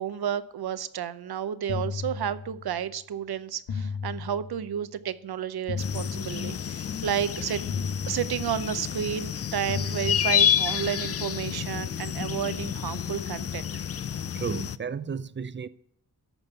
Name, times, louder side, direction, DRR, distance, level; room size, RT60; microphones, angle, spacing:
voice 1, 0.0-7.6 8.1-13.6, right 9 dB, 70° right, 0.7 m, -31 dB
sound 1, 1.7-2.9 3.7-4.9 5.7-6.9 7.7-8.9 9.7-10.9, left 5 dB, 85° left, 1.2 m, -35 dB
sound 2, 5.8-14.8, left 9 dB, 40° left, 0.4 m, -29 dB
voice 2, 14.3-15.7, right 6 dB, 30° right, 0.5 m, -33 dB
13.0 x 5.3 x 6.8 m
wide cardioid pair, 100°, 39 cm